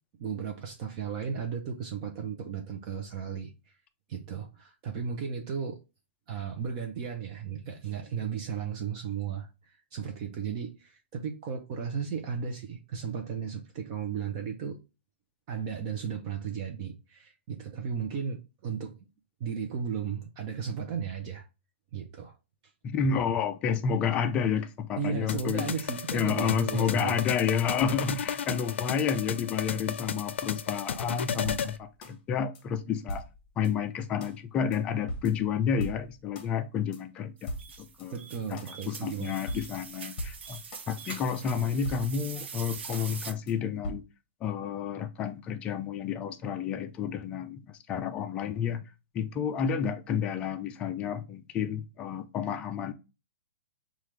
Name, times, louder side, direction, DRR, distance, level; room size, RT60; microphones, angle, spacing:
voice 1, 0.2-3.5 4.1-5.8 6.3-14.8 15.5-19.0 19.4-21.4 21.9-22.3 25.0-27.2 38.1-39.3, right 7 dB, 35° right, 0.7 m, -35 dB
voice 2, 22.8-25.7 26.1-33.3 33.6-37.5 37.8-38.2 38.5-44.0 44.4-48.8 49.1-52.9, left 7 dB, 15° left, 0.4 m, -30 dB
sound 1, 25.3-31.8, left 7 dB, 70° left, 0.5 m, -34 dB
sound 2, 30.9-32.2 32.5-32.6 33.1-33.7 34.2-34.4 34.7-34.8 35.1-36.5 36.9-37.0 37.5-38.1 38.6-38.7 39.1-39.2 39.5-40.9 41.3-41.4 41.8-42.5 42.9-43.1 43.5-43.6 43.8-43.9, equal, 35° left, 1.0 m, -40 dB
sound 3, 37.4-43.3, right 6 dB, 65° right, 0.8 m, -43 dB
5.7 x 2.4 x 3.2 m
hypercardioid pair, 155°, 6 cm